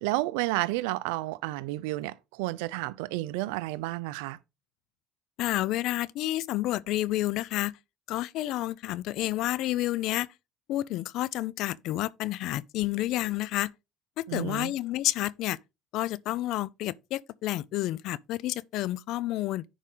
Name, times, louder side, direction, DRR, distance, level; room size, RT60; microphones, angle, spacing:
voice 1, 0.0-4.4 14.3-14.7, right 19 dB, 90° right, 0.6 m, -31 dB
voice 2, 5.4-7.8 8.1-10.3 10.7-13.7 14.2-15.6 15.9-19.6, left 15 dB, 70° left, 0.5 m, -30 dB
10.0 x 4.8 x 3.9 m
supercardioid pair, 90°, 0 cm